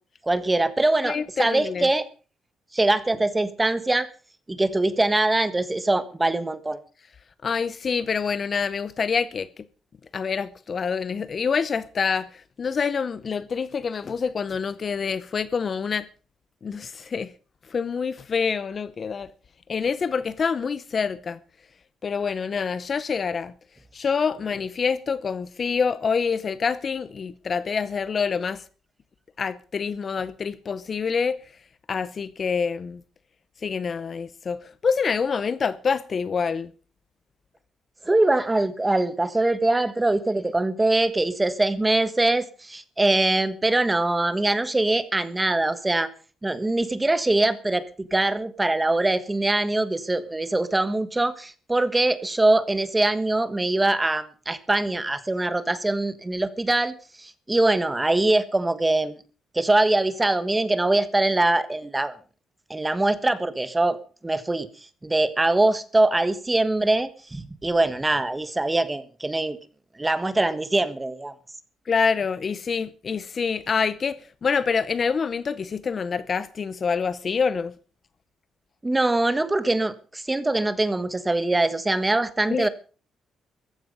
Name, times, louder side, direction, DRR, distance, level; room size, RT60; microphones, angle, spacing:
voice 1, 0.2-2.0 2.7-4.1 4.5-6.8 38.1-46.1 46.4-59.2 59.5-62.1 62.7-64.0 64.2-64.7 65.0-69.6 70.0-71.3 78.8-82.7, right 2 dB, 15° right, 1.3 m, -23 dB
voice 2, 1.0-1.9 7.4-9.5 10.1-12.3 12.6-16.1 16.6-17.3 17.7-19.3 19.7-21.4 22.0-23.5 23.9-28.6 29.4-31.4 31.9-33.0 33.6-36.7 71.9-77.7 82.5-82.7, left 5 dB, 35° left, 0.7 m, -26 dB
15.0 x 14.5 x 5.4 m
cardioid pair, 135°, 0 cm